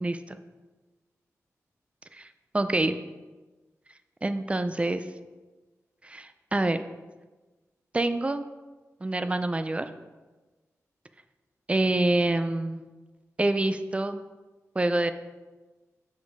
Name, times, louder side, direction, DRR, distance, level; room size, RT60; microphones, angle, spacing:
voice 1, 0.0-0.4 2.1-2.3 2.5-3.0 4.2-5.0 6.0-6.8 7.9-8.4 9.0-9.9 11.7-12.8 13.4-14.2 14.8-15.1, right 2 dB, 20° right, 10 dB, 0.4 m, -26 dB
6.3 x 5.1 x 4.8 m, 1.2 s
wide cardioid pair, 100°, 6 cm